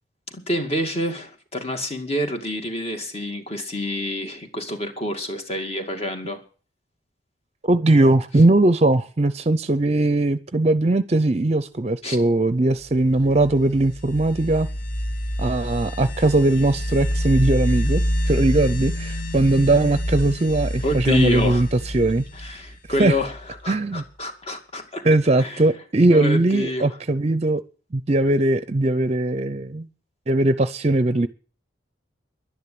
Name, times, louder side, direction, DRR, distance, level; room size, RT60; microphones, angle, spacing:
voice 1, 0.3-6.4 12.0-12.2 20.8-21.7 22.3-25.1 25.4-25.7 26.1-27.0, left 1 dB, 35° left, 2.3 m, -28 dB
voice 2, 7.6-14.7 15.4-18.0 18.3-21.7 21.9-22.2 23.0-23.2 23.7-24.0 25.0-27.6 27.9-29.9 30.3-31.3, right 2 dB, 35° right, 0.6 m, -19 dB
sound 1, 13.0-23.6, equal, 50° left, 1.0 m, -27 dB
11.5 x 10.5 x 8.5 m
head